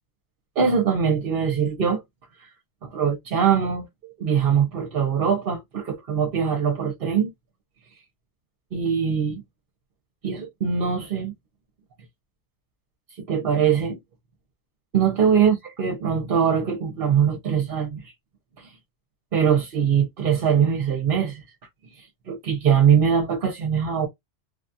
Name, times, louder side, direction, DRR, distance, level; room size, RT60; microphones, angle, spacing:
voice 1, 0.6-2.0 2.4-2.5 2.8-3.9 4.2-7.3 8.7-9.4 10.2-11.3 13.2-14.0 14.9-18.1 18.6-18.7 19.3-21.4 22.0-24.1, right 7 dB, 55° right, 0.9 m, -22 dB
3.2 x 2.3 x 2.6 m
omnidirectional pair, 1.3 m